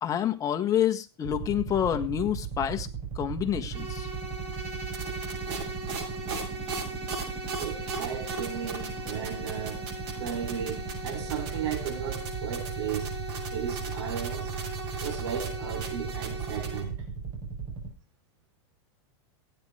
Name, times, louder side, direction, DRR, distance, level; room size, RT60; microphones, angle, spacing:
voice 1, 0.0-2.9 3.1-4.1, left 10 dB, 25° left, 1.5 m, -28 dB
sound 1, 1.2-17.9, right 6 dB, 35° right, 4.9 m, -37 dB
sound 2, 3.7-16.8, right 2 dB, 55° right, 7.2 m, -37 dB
voice 2, 7.6-9.9 10.2-13.2 13.5-14.6 15.0-17.0, right 8 dB, 80° right, 3.7 m, -35 dB
16.5 x 9.3 x 4.9 m
supercardioid pair, 140°, 14 cm